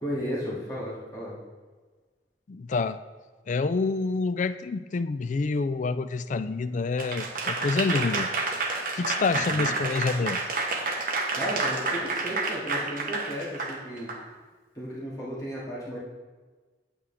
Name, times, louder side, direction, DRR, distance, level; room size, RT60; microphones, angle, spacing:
voice 1, 0.0-1.4 9.5-9.7 11.3-14.1 14.7-16.0, equal, 20° left, -8 dB, 2.5 m, -34 dB
voice 2, 2.5-3.0 3.5-8.3 8.9-10.4, left 4 dB, 45° left, 12 dB, 0.4 m, -27 dB
Applause / Crowd, 7.0-14.2, right 3 dB, 50° right, 1.1 m, -29 dB
8.8 x 8.8 x 3.5 m, 1.3 s
head